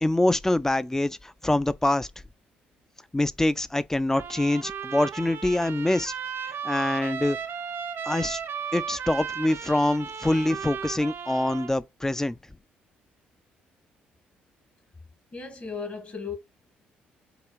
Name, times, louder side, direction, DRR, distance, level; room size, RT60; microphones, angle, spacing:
voice 1, 0.0-2.1 3.1-6.1 6.6-7.4 8.1-8.4 8.7-12.4, left 1 dB, 10° left, 0.3 m, -25 dB
Trumpet, 4.1-11.7, right 7 dB, 55° right, 0.5 m, -35 dB
voice 2, 15.3-16.3, left 5 dB, 35° left, 1.3 m, -35 dB
4.7 x 2.4 x 2.3 m
hypercardioid pair, 45°, 5 cm